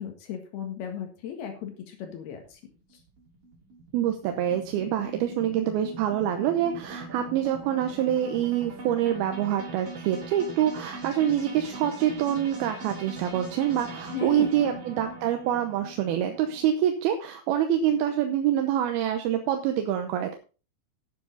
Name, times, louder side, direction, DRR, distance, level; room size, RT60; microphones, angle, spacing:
voice 1, 0.0-2.6 2.9-3.0 14.1-14.8, left 9 dB, 80° left, 4 dB, 3.7 m, -37 dB
sound 1, 2.4-16.7, right 3 dB, 35° right, 5.1 m, -41 dB
voice 2, 3.9-20.3, right 10 dB, 80° right, 6 dB, 2.8 m, -26 dB
11.5 x 9.9 x 3.9 m, 0.34 s
omnidirectional pair, 4.5 m